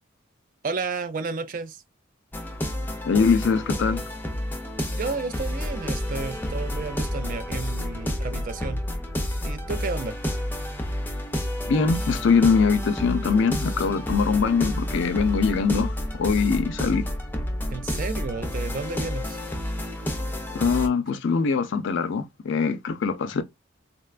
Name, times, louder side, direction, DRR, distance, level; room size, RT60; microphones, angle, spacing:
voice 1, 0.6-1.8 4.9-8.8 9.4-10.2 17.7-19.4, right 4 dB, 40° right, 0.4 m, -32 dB
sound 1, 2.3-20.9, left 1 dB, 10° left, 0.5 m, -30 dB
voice 2, 3.1-4.0 11.6-17.0 20.5-23.4, left 5 dB, 60° left, 0.4 m, -22 dB
3.9 x 2.2 x 2.4 m
head